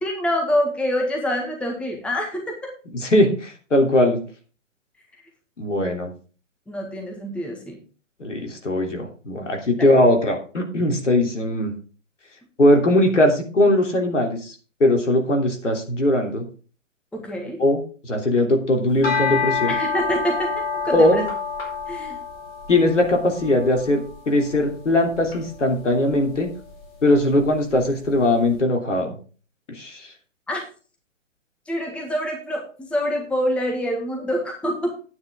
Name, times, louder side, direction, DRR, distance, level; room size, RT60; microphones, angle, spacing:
voice 1, 0.0-2.7 6.7-7.8 9.8-9.9 17.1-17.6 19.7-21.3 21.9-22.2 30.5-30.6 31.7-34.9, equal, 5° left, 1 dB, 1.7 m, -26 dB
voice 2, 3.0-4.2 5.6-6.1 8.2-11.7 12.6-14.4 14.8-16.4 17.6-19.7 20.9-21.2 22.7-24.0 24.3-26.5 27.0-29.1 29.7-30.1, left 1 dB, 70° left, 3 dB, 3.2 m, -20 dB
sound 1, 18.9-28.2, left 5 dB, 50° left, 4.5 m, -29 dB
11.0 x 9.5 x 3.6 m, 0.37 s
figure-of-eight pair, 125°, 38 cm